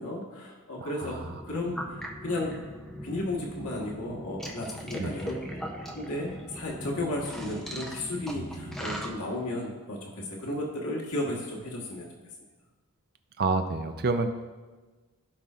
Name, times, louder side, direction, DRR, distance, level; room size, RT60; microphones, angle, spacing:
voice 1, 0.0-1.2 1.4-2.5 3.0-5.4 5.9-12.1, left 1 dB, 75° left, -3 dB, 1.5 m, -34 dB
voice 2, 0.8-1.4 5.0-5.2 8.4-8.8 13.4-14.3, right 3 dB, 45° right, 7 dB, 0.5 m, -30 dB
sound 1, 1.2-9.1, equal, ahead, 0.7 m, -39 dB
15.5 x 5.5 x 2.5 m, 1.3 s
head